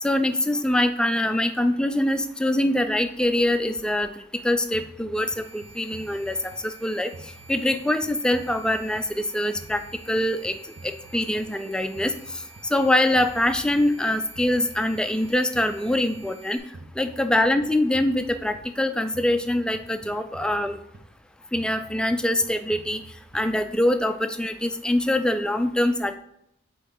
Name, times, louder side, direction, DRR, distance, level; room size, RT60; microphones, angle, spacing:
voice 1, 0.0-4.1 4.4-7.1 7.5-10.6 10.8-12.1 12.6-16.6 17.0-20.8 21.5-23.0 23.3-26.2, left 1 dB, 5° left, 8 dB, 0.3 m, -24 dB
sound 1, 4.7-6.8 7.1-9.3 9.6-11.7 12.0-14.1 14.4-16.3 16.7-18.8 19.1-21.2 21.5-23.7, right 2 dB, 50° right, 0.6 m, -47 dB
sound 2, 5.2-16.6, right 4 dB, 85° right, 1.3 m, -50 dB
8.2 x 3.0 x 3.7 m, 0.76 s
head